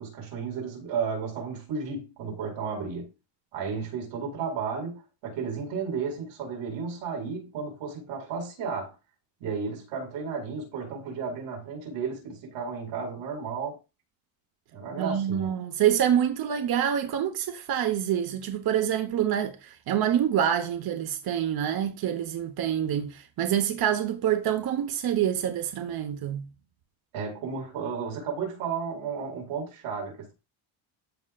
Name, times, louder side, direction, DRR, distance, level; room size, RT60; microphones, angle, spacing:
voice 1, 0.0-3.1 3.5-8.9 9.4-13.8 14.7-15.5 27.1-30.3, right 5 dB, 85° right, 4.9 m, -33 dB
voice 2, 14.9-26.5, right 10 dB, 45° right, 1.0 m, -26 dB
14.0 x 5.6 x 2.4 m
cardioid pair, 140°, 49 cm